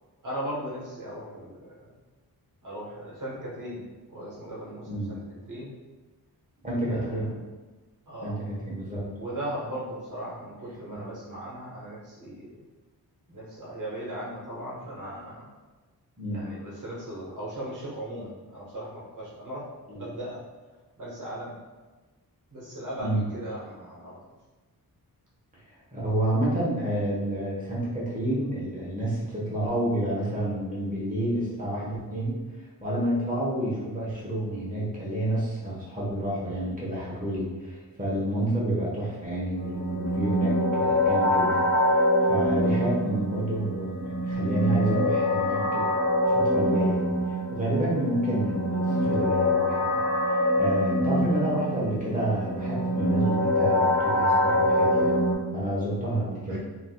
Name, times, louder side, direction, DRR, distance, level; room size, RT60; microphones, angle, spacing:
voice 1, 0.2-1.9 2.6-5.7 6.9-7.3 8.1-8.4 9.2-12.5 13.3-15.5 16.3-20.4 21.0-21.6 22.5-24.2 56.5-56.6, right 1 dB, 55° right, -6 dB, 1.3 m, -38 dB
voice 2, 6.6-7.3 8.2-9.0 16.2-16.5 19.9-20.0 23.0-23.2 25.9-45.9 46.2-49.9 50.3-55.2 55.5-56.6, right 1 dB, 20° right, -6 dB, 1.1 m, -29 dB
sound 1, 39.6-55.3, left 1 dB, 10° left, 0.7 m, -25 dB
3.6 x 2.8 x 2.3 m, 1.2 s
wide cardioid pair, 110°, 38 cm